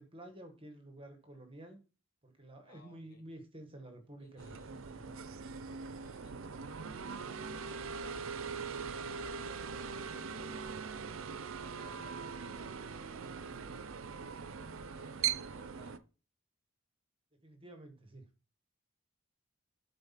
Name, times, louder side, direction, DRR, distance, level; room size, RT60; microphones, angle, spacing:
voice 1, 0.0-1.8 2.2-5.1 17.4-18.2, right 1 dB, 25° right, 5 dB, 1.3 m, -51 dB
voice 2, 2.6-3.2 4.2-4.8 5.7-7.2 9.3-14.2 14.9-16.1, left 1 dB, 45° left, 1 dB, 2.4 m, -63 dB
sound 1, 4.4-16.0, right 6 dB, 85° right, 0.6 m, -41 dB
8.0 x 4.2 x 5.6 m, 0.34 s
head